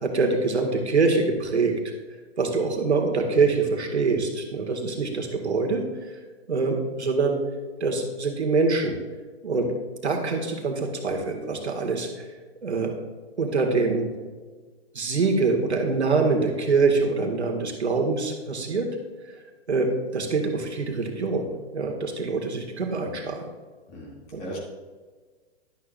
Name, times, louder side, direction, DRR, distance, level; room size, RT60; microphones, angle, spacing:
voice 1, 0.0-1.9 2.4-5.8 6.5-7.4 7.8-9.0 9.4-9.7 10.0-12.2 12.6-12.9 13.4-14.1 14.9-18.9 19.7-23.4 24.3-24.5, right 4 dB, 90° right, 2 dB, 1.8 m, -24 dB
voice 2, 23.9-24.6, equal, 35° left, -3 dB, 2.5 m, -38 dB
11.5 x 11.5 x 2.5 m, 1.4 s
hypercardioid pair, 125°, 33 cm